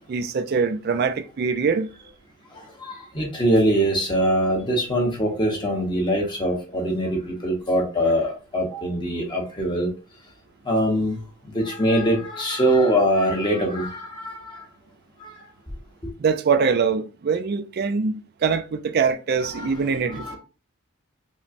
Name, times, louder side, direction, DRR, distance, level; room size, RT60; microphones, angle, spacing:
voice 1, 0.1-1.9 16.2-20.4, right 5 dB, 45° right, 0.3 m, -23 dB
voice 2, 2.8-9.9 10.7-11.2 11.5-14.6 15.2-15.3 19.5-19.8 20.1-20.4, equal, 20° left, 0.9 m, -23 dB
5.2 x 2.1 x 2.5 m
head